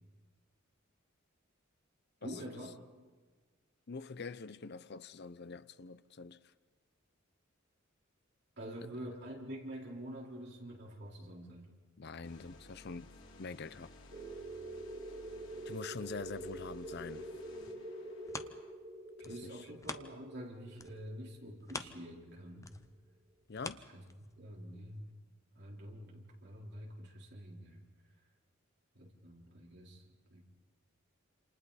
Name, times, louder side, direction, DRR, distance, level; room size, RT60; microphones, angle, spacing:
voice 1, 2.2-2.9 8.6-11.7 19.2-22.7 23.9-25.1 25.5-27.8 28.9-30.0 30.3-30.4, equal, 55° right, 4.1 m, -47 dB
voice 2, 3.9-6.4 12.0-13.1 13.4-13.9 15.7-17.3 23.5-23.8, left 4 dB, 55° left, 0.6 m, -44 dB
sound 1, 12.2-18.7, left 2 dB, 85° left, 3.6 m, -57 dB
sound 2, 14.1-22.4, right 1 dB, 35° right, 1.6 m, -46 dB
sound 3, 17.5-20.5 20.7-24.6 25.1-25.2, left 3 dB, 15° left, 0.7 m, -47 dB
28.0 x 27.5 x 4.2 m
head